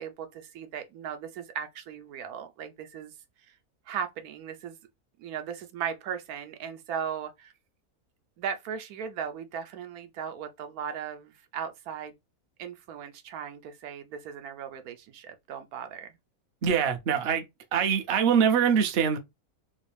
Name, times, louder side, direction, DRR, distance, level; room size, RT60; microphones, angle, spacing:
voice 1, 0.0-3.1 3.5-3.6 3.9-4.8 5.2-7.5 8.4-12.1 12.6-16.1, right 8 dB, 85° right, 1.1 m, -37 dB
voice 2, 16.6-17.4 17.7-19.2, right 7 dB, 55° right, 0.7 m, -23 dB
3.2 x 2.6 x 3.2 m
omnidirectional pair, 1.5 m